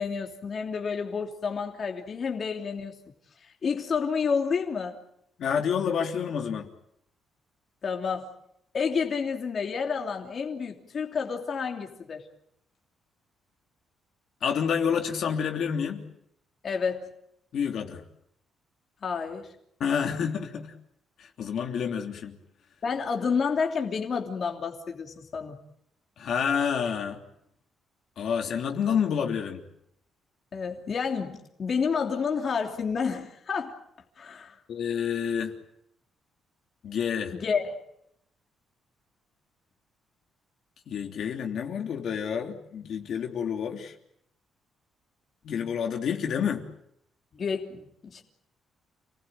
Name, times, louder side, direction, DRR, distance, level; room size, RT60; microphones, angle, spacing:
voice 1, 0.0-2.9 3.4-5.0 7.8-8.3 8.7-12.2 16.6-17.1 19.0-19.5 22.8-25.6 30.5-33.7 34.2-34.5 37.3-37.7 47.3-48.2, left 5 dB, 40° left, 2 dB, 3.1 m, -30 dB
voice 2, 5.4-6.7 14.4-16.0 17.5-18.0 19.8-20.7 21.2-22.4 26.2-27.2 28.2-29.6 34.7-35.6 36.8-37.3 40.9-43.9 45.4-46.6, left 7 dB, 60° left, 3 dB, 3.1 m, -28 dB
29.5 x 20.0 x 9.2 m, 0.76 s
cardioid pair, 145°, 0 cm